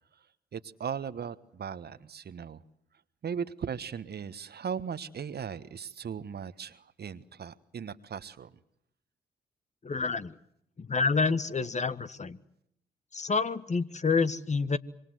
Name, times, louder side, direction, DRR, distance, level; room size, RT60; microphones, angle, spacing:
voice 1, 0.5-2.6 3.2-8.5, right 7 dB, 50° right, 14 dB, 1.3 m, -38 dB
voice 2, 9.8-10.4 10.8-12.4 13.1-14.8, left 4 dB, 35° left, 13 dB, 1.5 m, -28 dB
26.0 x 24.5 x 7.9 m, 0.73 s
hypercardioid pair, 40°, 21 cm